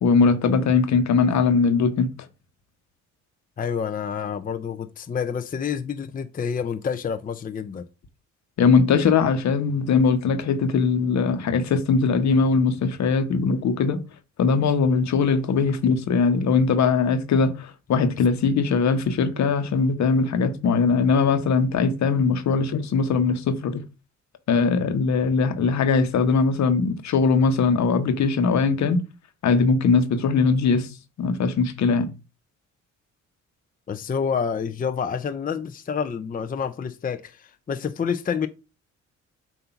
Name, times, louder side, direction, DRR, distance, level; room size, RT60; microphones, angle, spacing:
voice 1, 0.0-2.1 8.6-14.0 14.4-23.8 24.5-29.0 29.4-30.9 31.2-32.1, left 5 dB, 65° left, 1.1 m, -20 dB
voice 2, 3.6-7.8 33.9-38.5, left 6 dB, 30° left, 0.6 m, -28 dB
7.8 x 2.7 x 5.8 m
cardioid pair, 90°, 30 cm